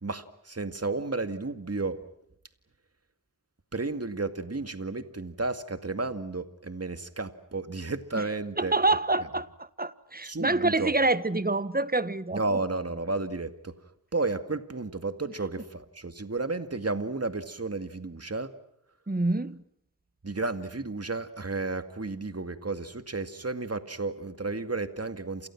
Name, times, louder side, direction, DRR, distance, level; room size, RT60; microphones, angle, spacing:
voice 1, 0.0-2.0 3.7-8.7 10.2-10.9 12.3-13.7 14.1-18.5 20.2-25.5, right 3 dB, 45° right, 2.2 m, -32 dB
voice 2, 8.6-12.4 19.1-19.6, right 2 dB, 25° right, 1.3 m, -27 dB
29.0 x 28.5 x 6.1 m
wide cardioid pair, 55°, 34 cm